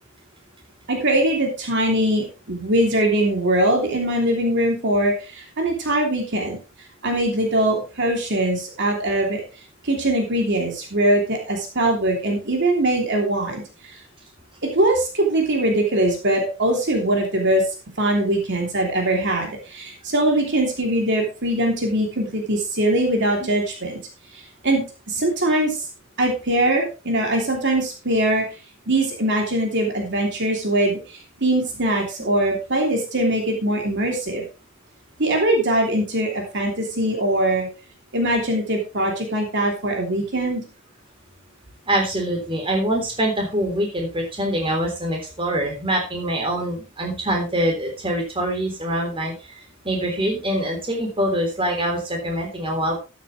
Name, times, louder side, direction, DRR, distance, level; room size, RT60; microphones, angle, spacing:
voice 1, 0.9-6.6 7.0-9.4 9.8-13.6 14.6-17.6 18.0-24.0 24.3-25.8 26.2-28.4 28.9-34.4 35.2-37.7 38.1-40.6, right 1 dB, 60° right, 1 dB, 3.0 m, -22 dB
voice 2, 41.9-49.3 49.8-53.0, right 1 dB, 25° right, 1 dB, 3.6 m, -24 dB
13.0 x 9.3 x 3.2 m, 0.30 s
head